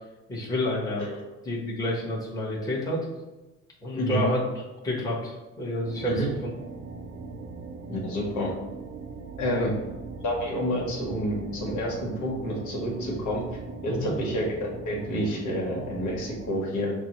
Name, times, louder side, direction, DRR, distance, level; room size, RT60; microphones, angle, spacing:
voice 1, 0.3-1.1 1.4-3.1 3.8-4.4 4.8-6.5 9.4-9.7 13.9-14.1, left 1 dB, 10° left, -6 dB, 1.1 m, -29 dB
sound 1, 5.8-16.5, right 4 dB, 45° right, 0.5 m, -40 dB
voice 2, 7.9-8.5 9.4-9.7 10.2-13.4 13.8-16.9, equal, 65° left, -2 dB, 1.2 m, -29 dB
5.9 x 2.1 x 2.9 m, 1.1 s
cardioid pair, 105°, 31 cm